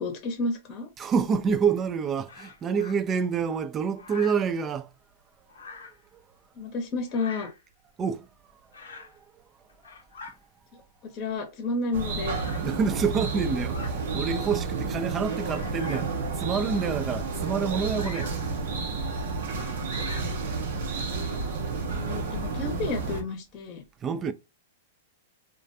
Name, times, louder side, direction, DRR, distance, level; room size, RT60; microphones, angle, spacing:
voice 1, 0.0-0.9 6.6-7.5 11.1-12.4 21.3-21.4 21.9-23.8, left 3 dB, 40° left, 0.7 m, -31 dB
voice 2, 1.0-4.9 8.0-8.3 8.9-9.1 12.6-18.3 24.0-24.3, right 6 dB, 25° right, 0.3 m, -27 dB
Bird vocalization bird call bird song, 2.3-3.0 4.0-4.5 5.5-6.0 7.1-7.6 8.7-9.2 9.7-10.4 11.2-11.3 12.4-12.7 13.6-14.0 14.6-14.7 15.4-16.2 17.9-18.4 19.5-20.4, left 4 dB, 85° left, 0.6 m, -44 dB
sound 1, 11.9-23.2, right 4 dB, 75° right, 0.7 m, -31 dB
2.3 x 2.1 x 2.6 m
hypercardioid pair, 125°, 0 cm